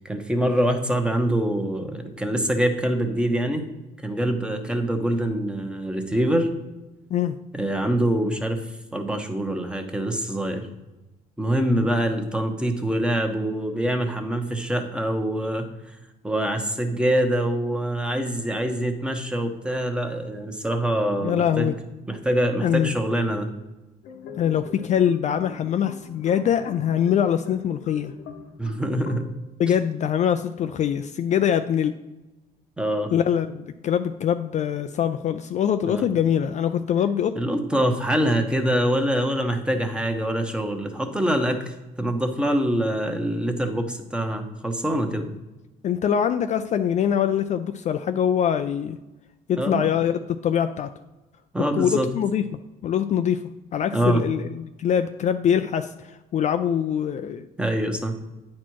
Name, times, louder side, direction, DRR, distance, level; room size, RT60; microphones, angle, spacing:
voice 1, 0.0-3.6 4.0-6.5 7.5-8.6 8.9-10.7 11.4-16.0 16.2-21.7 22.1-23.5 28.6-29.3 32.8-33.1 35.8-36.0 37.3-45.3 49.6-50.0 51.5-52.1 53.9-54.2 57.6-58.1, right 1 dB, 5° right, 5 dB, 1.0 m, -24 dB
voice 2, 21.2-21.7 22.6-22.9 24.4-28.1 29.6-31.9 33.1-37.3 45.8-49.0 49.5-50.9 51.7-52.4 52.8-53.4 53.7-57.4, left 9 dB, 45° left, 9 dB, 0.4 m, -23 dB
sound 1, 24.0-29.3, left 6 dB, 80° left, 1.0 m, -42 dB
9.3 x 4.3 x 4.6 m, 1.1 s
cardioid pair, 110°, 17 cm